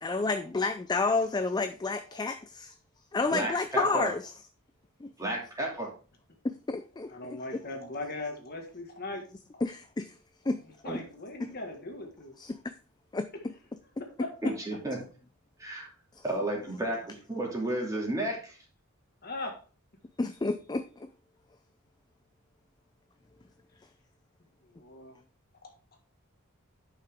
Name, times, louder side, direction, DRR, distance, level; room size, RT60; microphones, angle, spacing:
voice 1, 0.0-2.7 3.1-4.3 5.0-5.1 6.4-7.4 9.6-10.1 10.5-10.6 12.4-12.5 13.1-13.3 20.2-21.1, left 3 dB, 20° left, 9 dB, 0.4 m, -30 dB
voice 2, 3.3-4.1 5.2-5.9 10.8-11.0 14.4-15.0 15.6-15.9 16.2-18.6, right 1 dB, 15° right, -2 dB, 2.7 m, -32 dB
voice 3, 7.1-9.2 9.5-9.6 10.6-12.3 14.0-14.3 19.2-19.6 24.8-25.1 25.6-25.7, left 2 dB, 45° left, 3 dB, 1.8 m, -39 dB
10.5 x 5.7 x 3.6 m, 0.38 s
head